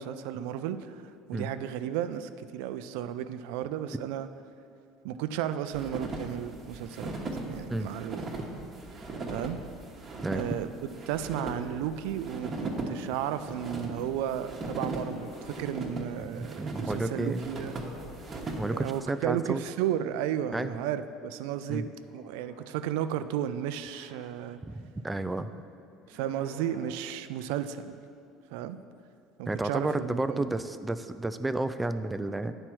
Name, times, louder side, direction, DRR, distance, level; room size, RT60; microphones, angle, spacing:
voice 1, 0.0-4.3 5.0-7.2 7.5-8.3 9.3-9.6 10.3-10.7 11.1-17.8 18.7-21.9 22.1-24.6 26.1-28.0 28.5-28.8 29.4-30.5, right 10 dB, 85° right, 11 dB, 0.4 m, -33 dB
sound 1, 5.7-19.0, right 2 dB, 30° right, 1.1 m, -38 dB
sound 2, 13.1-15.9 17.2-18.8 19.7-20.7 21.1-24.6 25.9-26.9, left 2 dB, 80° left, 1.6 m, -54 dB
voice 2, 16.3-17.5 18.5-19.6 20.5-20.8 21.7-21.8 24.7-25.5 29.5-32.5, right 2 dB, 10° right, 10 dB, 0.3 m, -31 dB
9.8 x 4.4 x 6.1 m, 2.5 s
cardioid pair, 130°, 0 cm